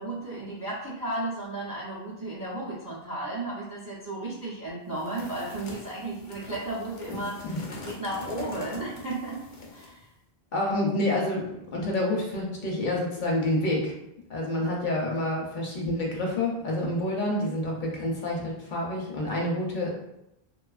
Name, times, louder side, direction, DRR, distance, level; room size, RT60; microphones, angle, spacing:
voice 1, 0.0-7.4 7.8-9.4 9.7-10.1 17.1-17.6, right 2 dB, 35° right, -5 dB, 0.3 m, -34 dB
sound 1, 5.0-10.0, left 3 dB, 85° left, 0.9 m, -44 dB
voice 2, 7.1-7.6 10.5-11.5 11.7-13.9 14.3-19.9, left 1 dB, 60° left, -2 dB, 0.6 m, -28 dB
2.5 x 2.3 x 2.3 m, 0.83 s
omnidirectional pair, 1.0 m